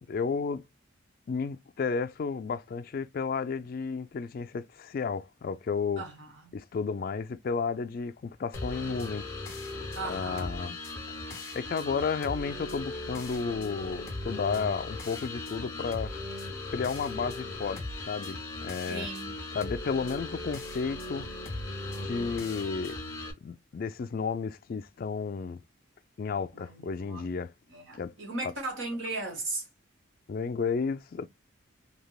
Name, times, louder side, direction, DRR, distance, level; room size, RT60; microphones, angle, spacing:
voice 1, 0.1-0.6 1.3-6.0 6.5-9.3 10.0-10.8 11.5-16.1 16.7-19.1 19.5-21.3 22.0-23.0 23.4-25.6 26.2-27.5 28.0-28.1 28.4-28.5 30.3-31.3, left 5 dB, 45° left, 0.3 m, -32 dB
voice 2, 6.0-6.5 9.9-10.5 18.9-19.3 22.1-22.5 22.8-22.9 26.5-27.3 27.7-29.7, right 2 dB, 65° right, 1.6 m, -37 dB
sound 1, 8.5-23.3, left 2 dB, 15° left, 1.0 m, -38 dB
3.3 x 2.8 x 2.3 m
head